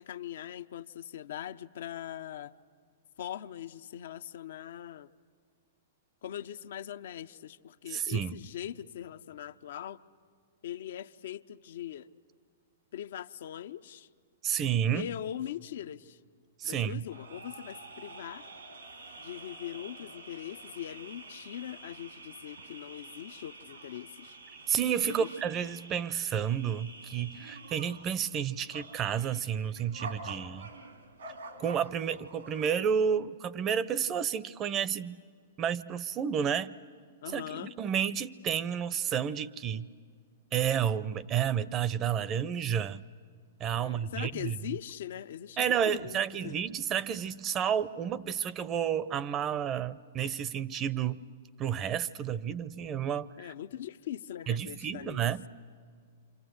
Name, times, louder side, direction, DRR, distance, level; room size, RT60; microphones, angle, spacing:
voice 1, 0.0-2.5 3.2-5.1 6.2-10.0 10.6-12.1 12.9-14.1 14.9-16.2 16.6-18.5 19.2-24.4 25.0-25.3 37.2-37.7 43.8-46.6 53.4-55.2, left 11 dB, 70° left, 12 dB, 0.6 m, -41 dB
voice 2, 7.9-8.3 14.4-15.1 16.6-17.0 24.7-30.7 31.6-35.2 35.6-36.8 37.3-39.9 40.5-43.0 43.6-44.6 45.6-51.2 51.6-53.5 54.5-55.4, right 8 dB, 30° right, 18 dB, 0.6 m, -31 dB
sound 1, 17.1-32.8, right 3 dB, 90° right, 2.8 m, -48 dB
28.5 x 26.5 x 7.9 m, 2.1 s
hypercardioid pair, 125°, 0 cm